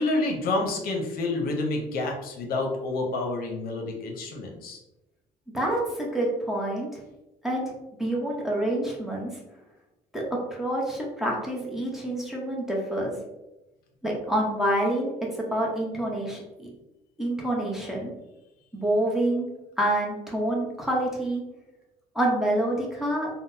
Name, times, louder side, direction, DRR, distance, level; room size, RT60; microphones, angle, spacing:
voice 1, 0.0-4.8, left 2 dB, 65° left, 1 dB, 0.7 m, -28 dB
voice 2, 5.5-7.0 7.4-7.6 8.0-9.3 10.1-10.2 10.5-13.2 14.0-15.1 15.4-16.7 17.2-18.1 18.7-19.5 19.8-21.4 22.1-23.3, right 1 dB, ahead, -3 dB, 0.8 m, -27 dB
3.7 x 2.1 x 2.6 m, 0.96 s
cardioid pair, 110°, 17 cm